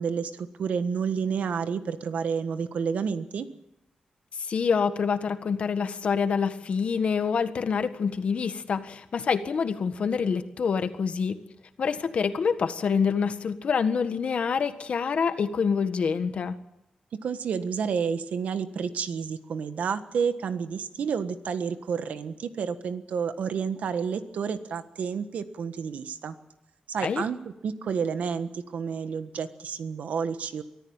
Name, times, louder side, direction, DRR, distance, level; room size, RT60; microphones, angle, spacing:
voice 1, 0.0-3.5 17.1-26.3 26.9-30.6, right 6 dB, 80° right, 10 dB, 1.5 m, -30 dB
voice 2, 4.4-11.4 11.8-16.5 27.0-27.2, left 6 dB, 55° left, 10 dB, 1.5 m, -26 dB
24.0 x 14.5 x 9.0 m, 0.89 s
wide cardioid pair, 145°, 2 cm